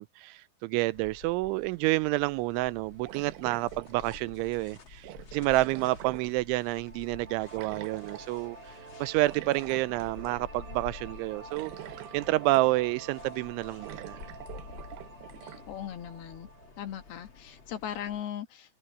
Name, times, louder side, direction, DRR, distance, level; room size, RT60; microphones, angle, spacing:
voice 1, 0.0-8.6 9.0-11.7 12.1-14.2, right 19 dB, 90° right, 3.0 m, -29 dB
sound 1, 0.9-18.2, left 5 dB, 45° left, 1.6 m, -50 dB
sound 2, 1.7-1.8 3.1-4.5 5.0-6.8 7.5-8.3 9.3-10.5 10.9-11.0 11.5-13.0 13.3-13.4 13.8-15.7, right 15 dB, 75° right, 2.9 m, -46 dB
sound 3, 6.7-17.8, right 4 dB, 50° right, 7.2 m, -49 dB
voice 2, 15.4-16.5 16.8-18.8, left 10 dB, 65° left, 3.1 m, -39 dB
omnidirectional pair, 5.4 m